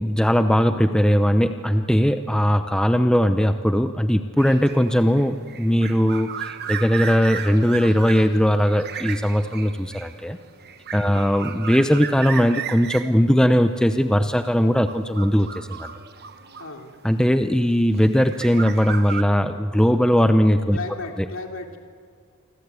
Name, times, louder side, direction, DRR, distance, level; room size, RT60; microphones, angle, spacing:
voice 1, 0.0-10.4 10.9-15.9 17.0-20.8, equal, 5° left, 8 dB, 0.7 m, -19 dB
sound 1, 4.4-17.3 18.0-19.2, right 8 dB, 50° right, 1.2 m, -35 dB
voice 2, 16.6-16.9 20.7-21.8, left 3 dB, 65° left, 3 dB, 3.0 m, -35 dB
28.0 x 24.5 x 8.3 m, 2.2 s
head